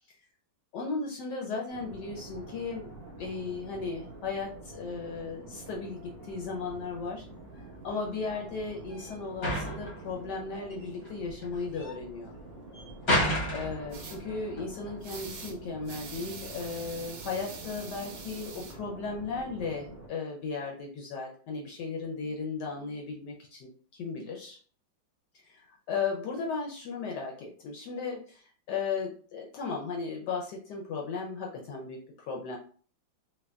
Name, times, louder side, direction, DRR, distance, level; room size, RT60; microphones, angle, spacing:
voice 1, 0.7-2.9 3.2-7.2 7.8-12.3 13.5-24.6 25.4-32.6, left 4 dB, 70° left, -1 dB, 1.0 m, -36 dB
sound 1, 1.7-20.1, right 2 dB, 85° right, 0.3 m, -47 dB
sound 2, 6.6-18.4, equal, 40° left, 0.7 m, -35 dB
sound 3, 13.9-14.2 15.0-15.5 15.8-18.7, right 5 dB, 70° right, 0.9 m, -44 dB
3.4 x 2.2 x 2.3 m, 0.43 s
omnidirectional pair, 2.1 m